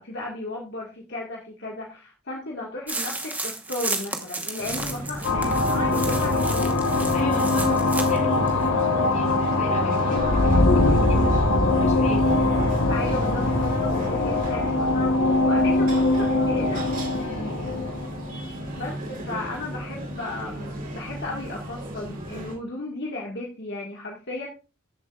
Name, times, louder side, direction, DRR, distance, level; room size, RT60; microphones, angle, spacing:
voice 1, 0.0-6.9 12.8-16.8 18.7-24.5, left 2 dB, 50° left, -3 dB, 1.8 m, -35 dB
sound 1, 2.9-8.2 8.5-8.6, right 2 dB, 5° right, 1.1 m, -33 dB
sound 2, 4.6-22.6, right 1 dB, 40° right, 3.7 m, -35 dB
sound 3, 5.2-19.4, left 2 dB, 75° left, 1.4 m, -22 dB
voice 2, 6.9-12.4 17.1-17.6, left 1 dB, 30° left, 0 dB, 3.5 m, -35 dB
13.5 x 7.4 x 2.4 m, 0.32 s
head